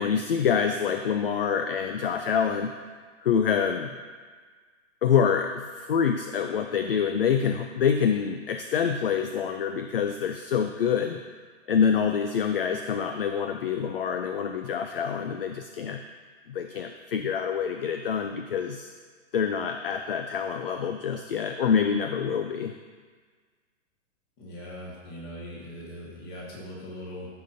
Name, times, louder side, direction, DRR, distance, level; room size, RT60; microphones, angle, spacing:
voice 1, 0.0-2.7 3.2-3.9 5.0-11.2 11.7-16.0 16.5-18.9 19.3-22.7, left 7 dB, 50° left, 6 dB, 0.4 m, -26 dB
voice 2, 24.4-27.3, equal, 20° left, -5 dB, 1.5 m, -40 dB
14.5 x 5.7 x 2.6 m, 1.5 s
hypercardioid pair, 180°, 38 cm